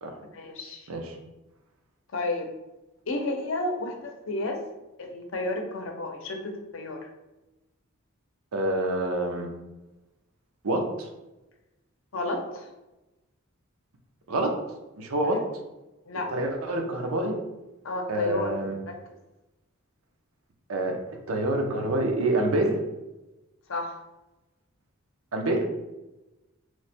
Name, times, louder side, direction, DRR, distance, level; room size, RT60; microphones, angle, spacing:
voice 1, 0.3-0.9 2.1-2.5 3.1-4.6 5.0-7.1 12.1-12.7 15.2-15.4 16.1-16.3 17.8-18.5 18.9-19.0 23.7-23.9, left 2 dB, 65° left, 3 dB, 0.6 m, -31 dB
voice 2, 8.5-9.5 10.6-11.1 14.3-14.6 15.0-15.4 16.3-17.4 18.1-18.8 20.7-21.0 21.3-22.8 25.3-25.6, right 1 dB, 80° right, 3 dB, 0.6 m, -26 dB
3.1 x 2.1 x 4.1 m, 1.0 s
head